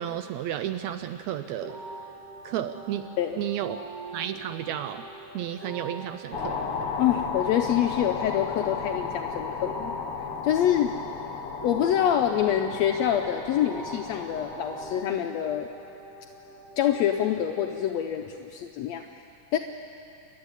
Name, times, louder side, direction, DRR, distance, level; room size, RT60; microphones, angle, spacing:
voice 1, 0.0-1.8 2.4-3.1 3.4-3.8 4.1-5.0 5.3-6.7, right 11 dB, 90° right, 9 dB, 1.6 m, -32 dB
sound 1, 1.6-17.6, right 3 dB, 65° right, 4.2 m, -43 dB
sound 2, 6.3-15.0, left 5 dB, 55° left, 1.9 m, -34 dB
voice 2, 7.0-9.9 10.4-10.9 11.6-15.7 16.8-19.0 19.5-19.6, left 10 dB, 80° left, 4 dB, 1.5 m, -26 dB
29.0 x 12.5 x 9.7 m, 2.7 s
omnidirectional pair, 4.0 m